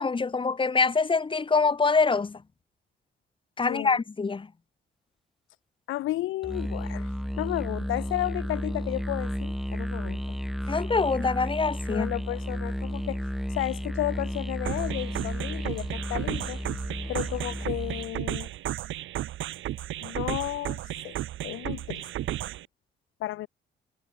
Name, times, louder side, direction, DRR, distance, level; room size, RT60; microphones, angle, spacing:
voice 1, 0.0-2.4 3.6-4.5 10.7-12.1, left 4 dB, 25° left, 1.2 m, -25 dB
voice 2, 3.6-4.0 5.9-10.4 10.6-10.7 11.9-16.6 17.1-18.5 20.0-22.1 23.2-23.5, left 16 dB, 90° left, 1.9 m, -33 dB
Musical instrument, 6.4-18.2, equal, ahead, 3.2 m, -33 dB
sound 1, 14.7-22.7, right 13 dB, 75° right, 1.5 m, -34 dB
cardioid pair, 90°, 20 cm